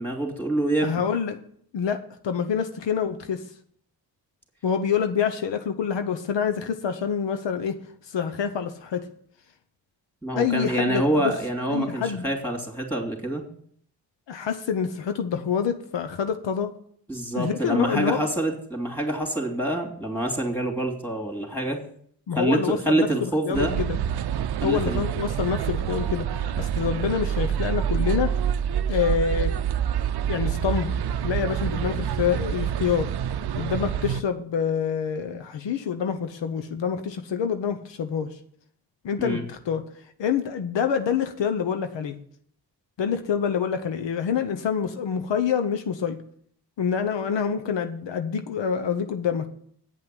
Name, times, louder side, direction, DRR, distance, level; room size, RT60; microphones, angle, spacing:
voice 1, 0.0-0.9 10.2-13.4 17.1-21.8 22.3-23.8 24.6-25.0 39.2-39.4, right 1 dB, 5° left, 1 dB, 2.9 m, -26 dB
voice 2, 0.8-1.4 1.7-3.4 4.6-7.8 8.1-9.1 10.4-11.3 11.7-12.2 14.3-16.7 17.4-18.2 22.3-24.0 24.6-28.4 28.9-29.5 30.3-30.9 31.2-33.1 33.6-38.4 39.0-39.8 40.2-42.2 43.0-46.2 46.8-49.5, left 7 dB, 80° left, 7 dB, 0.9 m, -26 dB
sound 1, 23.5-34.2, right 9 dB, 60° right, 0.6 m, -27 dB
8.8 x 5.7 x 8.0 m, 0.63 s
cardioid pair, 55°, 43 cm